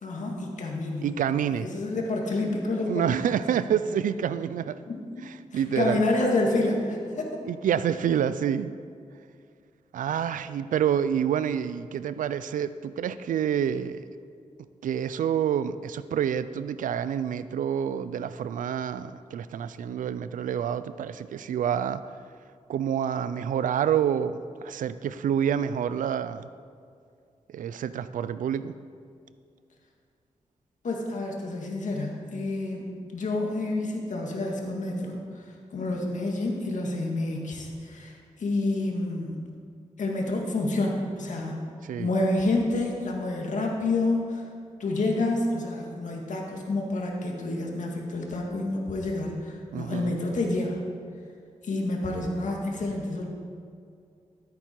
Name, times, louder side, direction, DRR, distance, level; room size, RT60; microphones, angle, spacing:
voice 1, 0.0-1.1 1.4-3.7 4.9-5.0 5.5-7.4 30.8-39.5 40.0-41.6 42.0-44.5 44.8-50.8 51.6-53.3, left 2 dB, 70° left, 0 dB, 2.2 m, -29 dB
voice 2, 1.0-1.7 2.9-4.8 5.5-6.0 7.5-8.7 9.9-14.0 14.8-22.0 22.7-26.5 27.5-28.7 41.9-42.1 49.7-50.2, right 9 dB, 90° right, 14 dB, 0.4 m, -28 dB
14.0 x 8.5 x 4.6 m, 2.3 s
cardioid pair, 65°, 13 cm